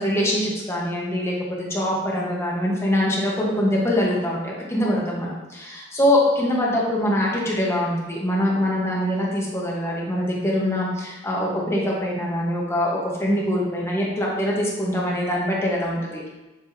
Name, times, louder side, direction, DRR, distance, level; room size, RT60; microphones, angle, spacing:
voice 1, 0.0-16.3, left 1 dB, 15° left, -4 dB, 1.1 m, -23 dB
7.6 x 4.8 x 2.7 m, 1.1 s
head